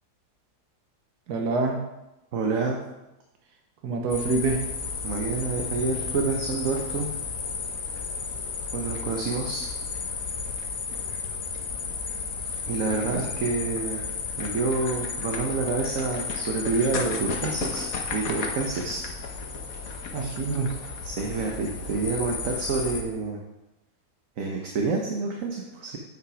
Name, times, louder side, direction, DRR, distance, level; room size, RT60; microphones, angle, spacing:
voice 1, 1.3-1.8 3.8-4.6 13.1-13.2 20.1-20.7, right 3 dB, 75° right, 2 dB, 1.6 m, -26 dB
voice 2, 2.3-2.8 5.0-7.1 8.7-9.7 12.7-14.0 14.4-17.9 18.1-19.0 21.0-23.4 24.4-26.0, right 4 dB, 60° right, 0 dB, 1.3 m, -28 dB
sound 1, 4.1-23.0, left 5 dB, 65° left, 1.4 m, -33 dB
9.2 x 5.7 x 4.9 m, 0.96 s
omnidirectional pair, 1.7 m